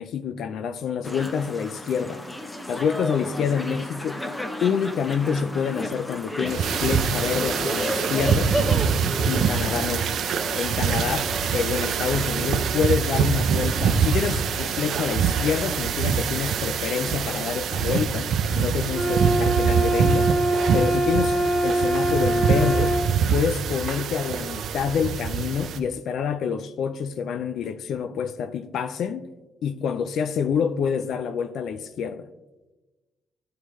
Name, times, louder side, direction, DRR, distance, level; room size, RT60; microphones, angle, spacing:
voice 1, 0.0-2.2 2.7-4.2 4.6-8.6 9.2-10.1 10.5-20.3 20.7-21.4 21.6-23.0 23.3-29.3 29.6-32.3, left 7 dB, 70° left, 0.3 m, -27 dB
sound 1, 1.0-11.7, left 1 dB, 15° left, 0.8 m, -33 dB
sound 2, 6.5-25.8, right 7 dB, 70° right, 0.5 m, -25 dB
sound 3, 18.9-23.1, right 2 dB, 10° right, 1.0 m, -23 dB
10.0 x 4.8 x 3.0 m
cardioid pair, 90°, 0 cm